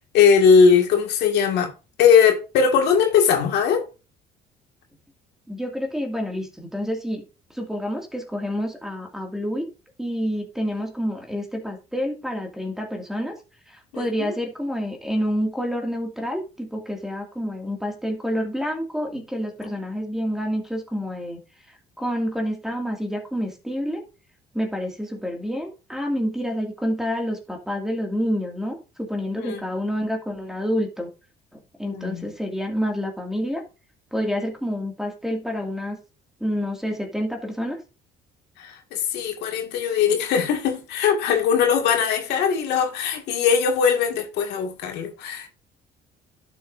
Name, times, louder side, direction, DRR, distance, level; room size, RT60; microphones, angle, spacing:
voice 1, 0.1-1.7 2.0-3.8 13.9-14.3 29.4-29.6 31.8-32.3 38.6-45.5, left 6 dB, 80° left, 2.2 m, -20 dB
voice 2, 5.5-7.2 7.5-9.7 10.0-13.3 13.7-21.4 22.0-24.0 24.5-31.1 31.8-33.6 34.1-36.0 36.4-37.8, equal, 5° right, 2.4 m, -28 dB
11.5 x 7.2 x 2.7 m
cardioid pair, 110°, 17 cm